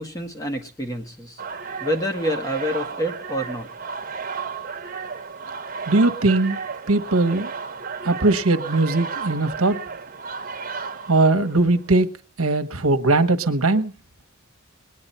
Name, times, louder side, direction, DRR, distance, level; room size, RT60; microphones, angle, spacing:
voice 1, 0.0-1.4 1.8-3.7, equal, 15° left, 4 dB, 1.7 m, -27 dB
sound 1, 1.4-11.8, right 5 dB, 40° right, 1.4 m, -33 dB
voice 2, 5.9-6.6 6.9-7.5 8.0-9.8 11.1-12.1 12.4-13.9, right 2 dB, 85° right, 8 dB, 1.2 m, -19 dB
20.5 x 9.8 x 4.4 m, 0.39 s
head